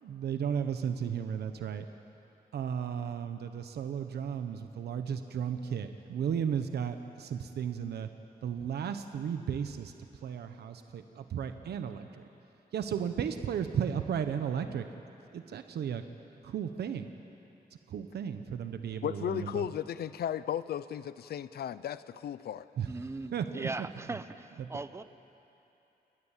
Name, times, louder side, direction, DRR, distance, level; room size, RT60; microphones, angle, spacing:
voice 1, 0.0-1.8 2.5-8.1 8.4-9.9 10.2-12.1 12.7-14.8 15.3-16.0 16.4-17.1 17.9-19.6 22.8-22.9 23.3-23.7, right 8 dB, 90° right, 8 dB, 1.1 m, -34 dB
voice 2, 19.0-22.7, left 10 dB, 80° left, 15 dB, 0.7 m, -35 dB
voice 3, 22.9-25.0, right 3 dB, 15° right, 12 dB, 0.7 m, -39 dB
29.5 x 20.0 x 7.5 m, 2.9 s
wide cardioid pair, 160°, 16 cm